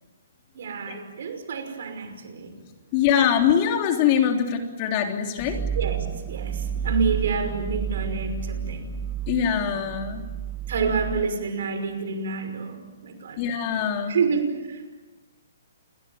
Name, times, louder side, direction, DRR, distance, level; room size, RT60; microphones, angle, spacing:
voice 1, 0.5-2.5 5.7-8.9 10.7-13.4 14.1-14.8, right 4 dB, 65° right, 7 dB, 5.6 m, -28 dB
voice 2, 2.9-5.6 9.3-10.2 13.4-14.2, left 8 dB, 35° left, 4 dB, 3.4 m, -23 dB
sound 1, 5.4-11.2, right 9 dB, 10° right, 1.4 m, -30 dB
29.0 x 21.5 x 7.3 m, 1.2 s
hypercardioid pair, 145°, 0 cm